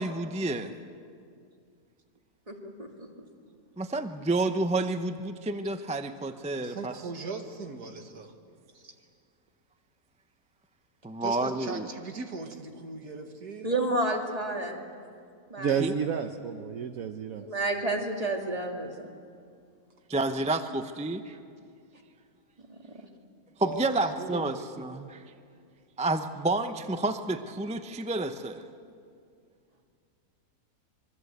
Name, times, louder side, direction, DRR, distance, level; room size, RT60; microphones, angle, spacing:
voice 1, 0.0-0.7 3.8-6.9 11.0-11.9 15.8-15.9 20.1-21.4 23.6-25.2 26.0-28.6, right 2 dB, 5° right, 8 dB, 0.6 m, -30 dB
voice 2, 2.5-3.1 13.6-14.8 15.5-15.7 17.4-19.1 22.7-22.8, right 2 dB, 25° right, 1 dB, 2.5 m, -30 dB
voice 3, 6.6-8.3 11.2-13.8 23.6-24.7, right 4 dB, 85° right, 4 dB, 2.3 m, -39 dB
voice 4, 15.6-17.5, right 7 dB, 65° right, 6 dB, 1.3 m, -31 dB
25.5 x 23.0 x 8.1 m, 2.3 s
omnidirectional pair, 1.6 m